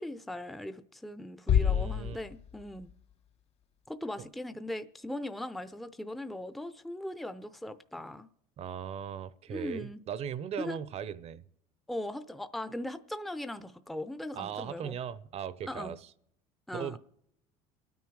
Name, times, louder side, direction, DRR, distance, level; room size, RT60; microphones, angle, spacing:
voice 1, 0.0-2.9 3.9-8.3 9.5-10.0 10.6-10.8 11.9-15.0 15.7-15.9 16.7-17.0, left 1 dB, ahead, 0.6 m, -39 dB
sound 1, 1.5-3.4, left 9 dB, 40° left, 0.6 m, -29 dB
voice 2, 1.5-2.2 4.2-4.3 8.6-11.4 14.3-16.0 16.7-17.0, right 8 dB, 45° right, 0.7 m, -38 dB
27.5 x 9.4 x 4.7 m
supercardioid pair, 115°, 15 cm